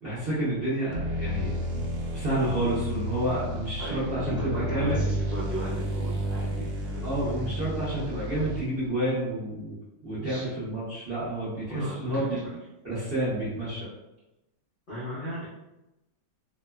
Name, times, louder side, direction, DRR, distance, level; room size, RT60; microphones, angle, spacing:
voice 1, 0.0-1.9 2.1-5.0 7.0-9.7 10.0-12.4 12.8-13.9, right 1 dB, 50° right, -10 dB, 0.7 m, -29 dB
sound 1, 0.9-8.9, equal, 75° right, 1.1 m, -32 dB
voice 2, 3.8-7.4 10.2-10.5 11.7-12.5 14.9-15.5, equal, 60° left, -9 dB, 0.5 m, -37 dB
2.9 x 2.1 x 2.2 m, 0.95 s
omnidirectional pair, 1.9 m